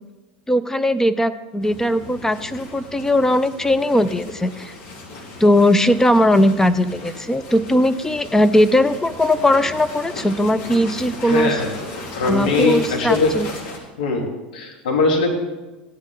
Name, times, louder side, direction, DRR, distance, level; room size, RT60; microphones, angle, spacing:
voice 1, 0.5-4.7 5.4-11.6 12.2-13.5, left 1 dB, 10° left, 11 dB, 0.5 m, -18 dB
sound 1, 1.6-13.8, left 2 dB, 50° left, 2.6 m, -36 dB
voice 2, 11.2-11.8 12.1-13.4 14.0-15.4, left 3 dB, 65° left, 0 dB, 2.6 m, -21 dB
15.5 x 10.5 x 3.9 m, 1.1 s
figure-of-eight pair, 80°, 5 cm